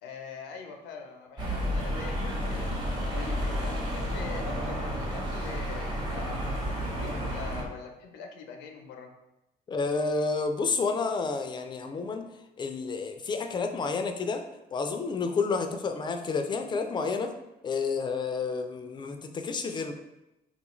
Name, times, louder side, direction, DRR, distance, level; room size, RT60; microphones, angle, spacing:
voice 1, 0.0-2.7 3.1-9.1, left 5 dB, 90° left, 3 dB, 0.5 m, -43 dB
sound 1, 1.4-7.6, equal, 25° right, 1.0 m, -31 dB
voice 2, 9.7-12.3 12.6-14.4 14.7-17.3 17.6-19.9, left 4 dB, 25° left, 6 dB, 0.4 m, -30 dB
3.6 x 2.3 x 3.0 m, 0.95 s
cardioid pair, 110°, 17 cm